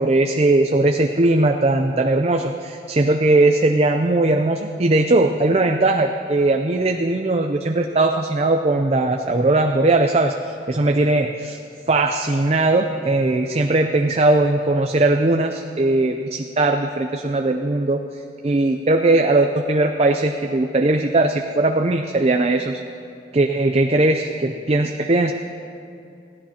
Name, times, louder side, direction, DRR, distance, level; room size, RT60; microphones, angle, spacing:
voice 1, 0.0-11.6 11.9-22.8 23.3-25.3, right 2 dB, 35° right, 5 dB, 0.5 m, -19 dB
21.5 x 15.5 x 2.9 m, 2.6 s
head